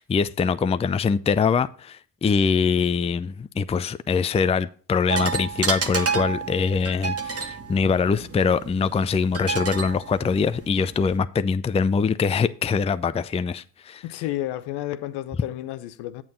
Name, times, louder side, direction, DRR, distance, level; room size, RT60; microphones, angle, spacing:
voice 1, 0.0-14.0, left 5 dB, 15° left, 0.5 m, -23 dB
sound 1, 5.1-11.2, right 5 dB, 35° right, 1.6 m, -30 dB
voice 2, 14.0-16.2, left 14 dB, 65° left, 0.8 m, -31 dB
8.6 x 7.3 x 3.8 m
hypercardioid pair, 50°, 42 cm